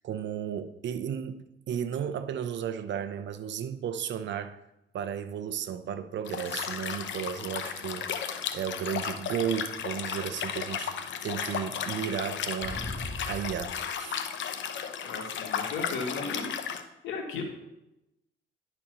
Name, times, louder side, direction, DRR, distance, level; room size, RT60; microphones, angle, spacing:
voice 1, 0.0-4.6 4.9-8.1 8.5-10.9 11.2-12.9 13.2-14.2, right 8 dB, 65° right, 0.7 m, -34 dB
Liquid, 6.2-16.8, left 8 dB, 70° left, 0.8 m, -34 dB
sound 1, 6.4-9.1 9.8-9.9 12.6-13.8 15.7-15.8, left 1 dB, 30° left, 1.6 m, -44 dB
voice 2, 15.0-17.4, left 4 dB, 85° left, 1.9 m, -36 dB
10.0 x 4.3 x 6.1 m
cardioid pair, 90°, 20 cm